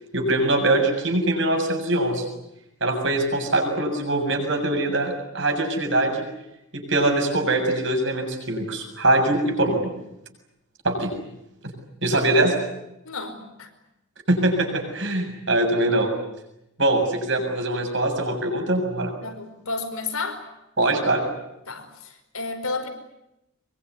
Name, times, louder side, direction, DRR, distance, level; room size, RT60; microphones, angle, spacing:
voice 1, 0.1-2.2 2.8-6.2 6.7-9.9 10.8-11.1 12.0-12.5 14.3-16.1 16.8-19.1 20.8-21.2, right 2 dB, 60° right, 4 dB, 7.2 m, -22 dB
voice 2, 13.0-13.7 19.2-20.4 21.7-22.9, left 3 dB, 85° left, 7 dB, 5.0 m, -32 dB
24.0 x 23.0 x 9.7 m, 0.87 s
head